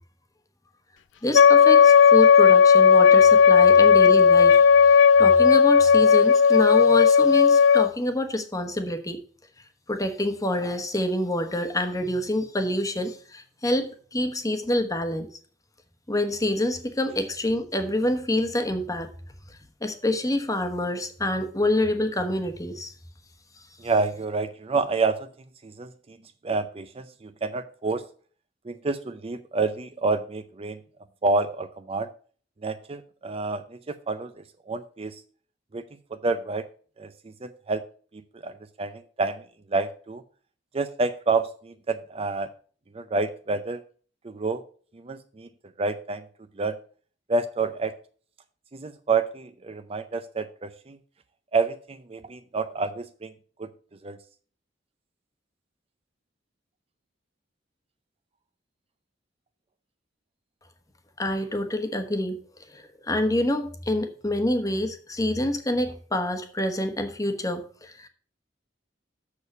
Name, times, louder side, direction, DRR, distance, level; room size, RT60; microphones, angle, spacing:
voice 1, 1.2-9.2 9.9-15.3 16.1-19.1 19.5-22.9 61.2-62.4 62.7-68.1, left 1 dB, 20° left, 7 dB, 1.1 m, -27 dB
Wind instrument woodwind instrument, 1.3-7.9, left 6 dB, 75° left, 0.4 m, -15 dB
voice 2, 23.8-25.3 25.6-26.2 26.4-28.0 28.6-30.8 31.2-32.1 32.6-35.2 35.7-35.8 36.1-36.7 37.0-37.8 38.1-39.4 39.7-40.2 40.7-42.5 42.9-43.8 44.2-44.6 44.9-45.5 45.8-46.3 46.5-46.8 47.3-47.9 48.7-51.0 51.5-53.3 53.6-53.7 54.0-54.2, right 3 dB, 30° right, 10 dB, 0.5 m, -28 dB
6.7 x 6.6 x 6.7 m, 0.44 s
head